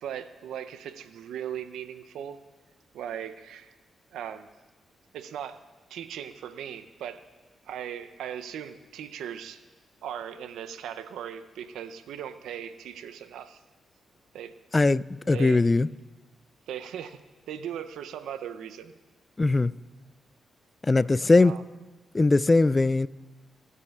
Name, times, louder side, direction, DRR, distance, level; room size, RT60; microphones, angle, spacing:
voice 1, 0.0-2.4 2.9-3.7 4.1-4.5 5.1-5.6 5.9-7.2 7.7-9.6 10.0-13.6 14.3-14.5 15.3-15.6 16.7-17.2 17.5-18.9 21.4-21.6, right 9 dB, 80° right, 0.6 m, -38 dB
voice 2, 14.7-15.9 19.4-19.7 20.8-21.5 22.1-23.1, left 3 dB, 30° left, 0.4 m, -20 dB
20.5 x 8.5 x 2.4 m
hypercardioid pair, 40°, 0 cm